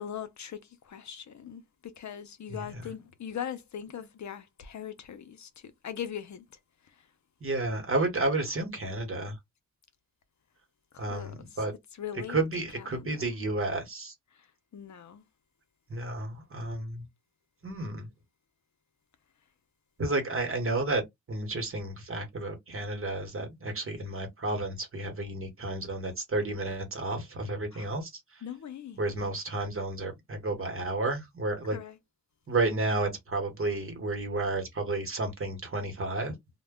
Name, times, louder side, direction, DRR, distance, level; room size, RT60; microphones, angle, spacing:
voice 1, 0.0-6.4 10.9-11.4 12.0-12.4 12.8-13.2 14.7-15.2 27.7-27.9 28.4-29.0 31.7-32.0, left 9 dB, 65° left, 0.6 m, -40 dB
voice 2, 2.5-2.8 7.4-9.4 11.0-11.7 12.3-14.1 15.9-17.0 17.6-18.1 20.0-28.4 29.0-31.8 32.5-36.3, right 2 dB, 45° right, 1.0 m, -31 dB
2.2 x 2.1 x 3.5 m
wide cardioid pair, 140°, 30 cm